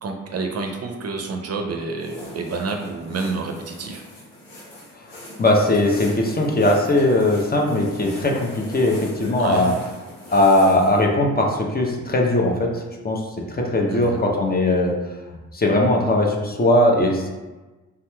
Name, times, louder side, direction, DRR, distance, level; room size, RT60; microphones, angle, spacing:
voice 1, 0.0-4.0 9.4-9.7 13.9-14.2, right 3 dB, 50° right, 3 dB, 0.5 m, -29 dB
sound 1, 2.0-11.0, equal, 75° left, 1.1 m, -40 dB
voice 2, 5.4-9.7 10.3-13.2 13.6-14.9 15.5-17.3, left 1 dB, 25° left, 0 dB, 0.7 m, -19 dB
3.4 x 2.8 x 2.3 m, 1.2 s
supercardioid pair, 50°, 34 cm